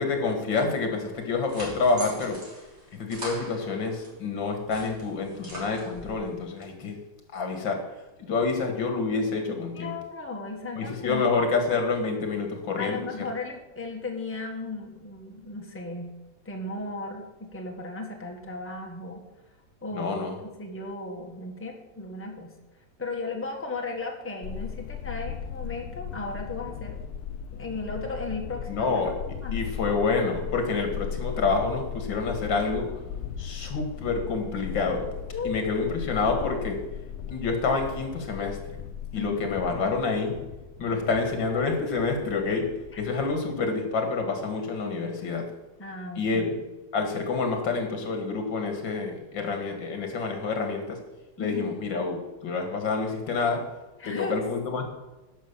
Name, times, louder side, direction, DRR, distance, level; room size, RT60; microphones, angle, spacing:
voice 1, 0.0-2.4 2.9-7.0 7.3-7.8 8.2-9.9 10.8-13.0 19.9-20.4 28.7-29.1 29.5-32.9 33.4-35.1 35.4-36.8 37.3-38.8 39.1-40.4 40.8-42.7 43.0-45.4 46.2-46.6 46.9-51.0 51.4-53.6 54.0-54.8, left 4 dB, 90° left, 5 dB, 2.5 m, -28 dB
sound 1, 1.1-4.1 4.5-6.2, right 1 dB, 50° right, 3.9 m, -42 dB
voice 2, 9.7-11.5 12.8-16.1 16.4-19.2 19.8-20.2 20.6-22.5 23.0-27.0 27.5-28.9 29.4-29.7 35.3-35.8 39.1-39.6 42.9-43.0 45.8-46.5 51.4-51.8 54.0-54.4, left 3 dB, 10° left, 1 dB, 1.3 m, -35 dB
sound 2, 24.4-43.4, left 8 dB, 70° left, 1.0 m, -37 dB
10.5 x 6.5 x 7.0 m, 1.1 s
omnidirectional pair, 2.0 m